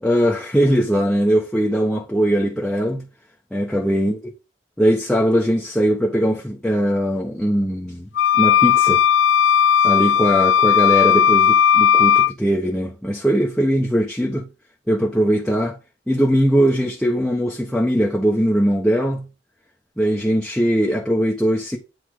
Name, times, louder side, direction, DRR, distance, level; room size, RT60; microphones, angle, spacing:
voice 1, 0.0-3.1 3.5-4.2 4.8-8.1 8.4-9.0 9.8-14.5 14.9-15.8 16.1-19.3 20.0-21.8, equal, 5° left, 1.1 m, -20 dB
sound 1, 8.2-12.3, left 8 dB, 75° left, 0.5 m, -15 dB
9.3 x 5.0 x 3.8 m
head